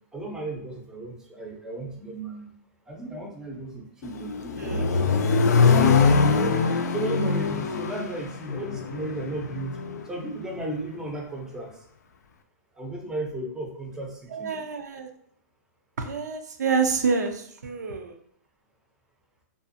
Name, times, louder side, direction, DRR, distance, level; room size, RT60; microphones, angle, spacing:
voice 1, 0.1-2.5 2.9-5.7 6.2-6.6 6.9-9.8 10.0-11.9 12.7-14.5, right 2 dB, 5° right, -1 dB, 0.5 m, -35 dB
Accelerating revving vroom, 4.0-10.1, left 4 dB, 85° left, 0.4 m, -22 dB
voice 2, 14.3-15.1 16.0-18.2, right 5 dB, 90° right, 5 dB, 0.4 m, -27 dB
2.5 x 2.3 x 2.5 m, 0.65 s
hypercardioid pair, 135°, 9 cm